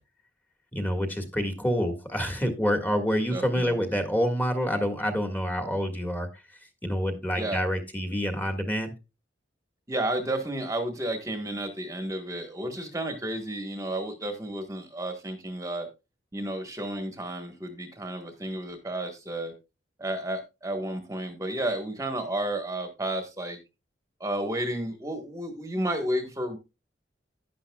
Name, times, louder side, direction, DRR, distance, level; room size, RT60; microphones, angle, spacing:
voice 1, 0.7-6.3 6.8-8.9, equal, 10° left, 5 dB, 1.7 m, -27 dB
voice 2, 3.3-3.9 7.3-7.6 9.9-15.9 16.3-19.5 20.0-23.6 24.2-26.6, right 1 dB, 15° right, 5 dB, 1.3 m, -32 dB
11.0 x 10.0 x 2.3 m, 0.26 s
head